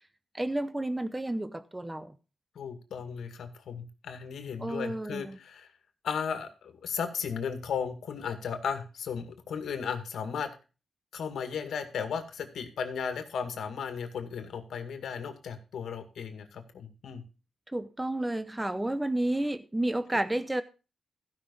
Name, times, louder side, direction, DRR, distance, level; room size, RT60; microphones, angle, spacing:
voice 1, 0.3-2.1 4.6-5.4 17.7-20.6, right 1 dB, 10° right, 0.7 m, -31 dB
voice 2, 2.6-5.7 6.0-10.5 11.1-17.2, left 6 dB, 85° left, 2.0 m, -35 dB
15.5 x 5.9 x 5.4 m
wide cardioid pair, 120°, 0 cm